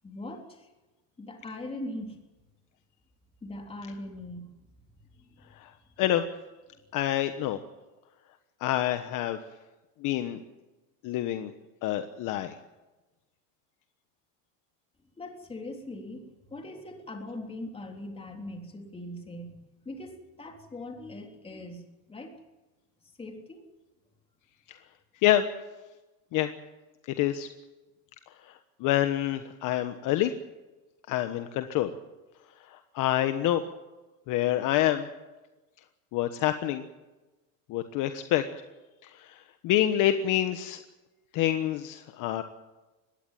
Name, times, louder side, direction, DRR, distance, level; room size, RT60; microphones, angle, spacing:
voice 1, 0.0-0.4 1.2-2.2 3.4-4.5 15.2-19.5 19.8-20.1 20.4-21.8 22.1-22.3 23.2-23.6, left 1 dB, 15° left, 3 dB, 3.5 m, -40 dB
voice 2, 6.9-7.6 8.6-9.4 10.0-10.4 11.0-11.5 11.8-12.6 24.7-24.8 25.2-25.4 26.3-26.5 27.1-27.5 28.5-30.3 31.1-31.9 32.7-33.6 34.3-35.1 36.1-36.8 37.7-38.4 39.0-40.8 41.3-42.4, left 13 dB, 50° left, 9 dB, 1.3 m, -27 dB
21.0 x 16.5 x 9.2 m, 1.1 s
supercardioid pair, 140°, 42 cm